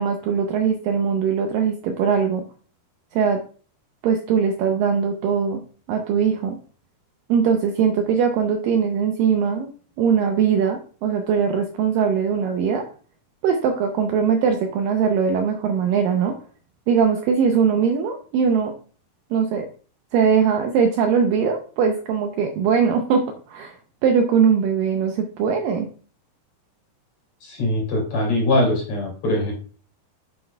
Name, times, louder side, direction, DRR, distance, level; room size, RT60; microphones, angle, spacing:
voice 1, 0.0-2.4 3.1-3.4 4.0-5.6 5.9-6.6 7.3-9.7 10.0-12.8 13.4-16.3 16.9-18.7 19.3-19.7 20.1-23.2 23.5-23.8 24.0-25.9, right 6 dB, 85° right, 4 dB, 2.0 m, -21 dB
voice 2, 27.4-29.5, left 1 dB, 45° left, -1 dB, 3.5 m, -22 dB
7.7 x 7.6 x 2.3 m, 0.41 s
omnidirectional pair, 4.7 m